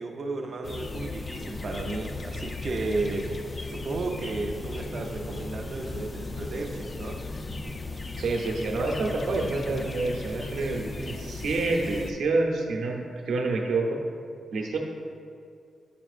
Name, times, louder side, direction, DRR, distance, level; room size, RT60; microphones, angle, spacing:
voice 1, 0.0-7.2, right 2 dB, 45° right, 2 dB, 0.5 m, -33 dB
sound 1, 0.6-12.1, left 3 dB, 25° left, 0.3 m, -36 dB
voice 2, 8.2-14.0 14.5-14.8, right 3 dB, 75° right, 1 dB, 0.8 m, -28 dB
8.8 x 5.9 x 2.4 m, 2.4 s
wide cardioid pair, 165°, 0 cm